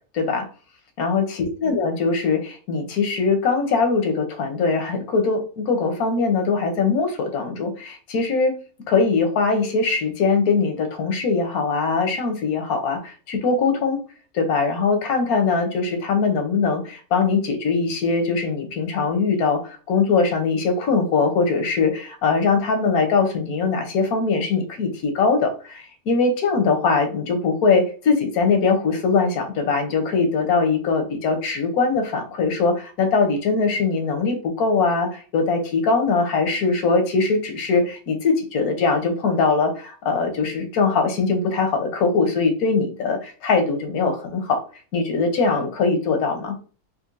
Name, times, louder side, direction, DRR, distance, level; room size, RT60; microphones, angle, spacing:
voice 1, 0.1-0.5 1.0-8.5 8.9-14.0 14.3-44.6 44.9-46.6, left 4 dB, 90° left, 6 dB, 1.3 m, -21 dB
4.2 x 2.5 x 2.6 m, 0.38 s
omnidirectional pair, 1.5 m